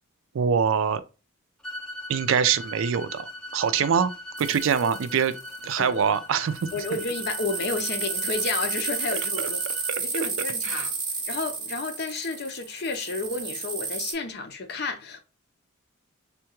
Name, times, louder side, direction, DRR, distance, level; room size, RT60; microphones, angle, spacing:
voice 1, 0.3-1.0 2.1-4.1 4.4-5.4 5.6-6.8 9.4-10.0 10.6-10.9, right 7 dB, 70° right, 0.4 m, -24 dB
sound 1, 1.6-9.9, left 2 dB, 5° left, 0.5 m, -41 dB
sound 2, 4.4-5.6 6.5-14.1, right 4 dB, 25° right, 0.8 m, -32 dB
voice 2, 6.7-9.6 10.0-10.9 11.3-15.2, left 3 dB, 50° left, 0.6 m, -31 dB
3.6 x 2.3 x 2.9 m
head